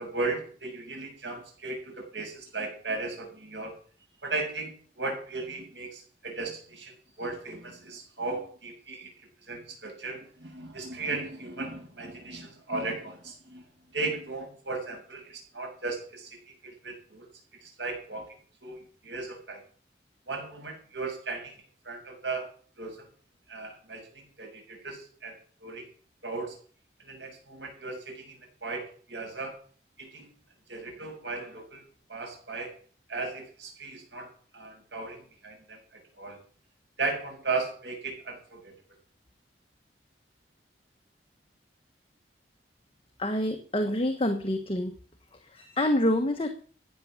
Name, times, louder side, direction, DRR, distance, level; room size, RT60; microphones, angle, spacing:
voice 1, 0.0-3.8 4.2-13.6 13.9-16.3 16.6-17.3 17.6-18.3 18.6-19.6 20.3-22.5 22.8-23.1 23.5-25.4 25.6-25.9 26.2-26.6 27.0-29.6 30.0-30.3 30.7-31.8 32.1-32.7 33.1-36.4 37.0-38.7, right 3 dB, 80° right, 1 dB, 6.9 m, -36 dB
voice 2, 43.2-44.9 45.5-46.5, left 1 dB, 30° left, 6 dB, 1.3 m, -27 dB
15.0 x 9.4 x 7.3 m, 0.43 s
head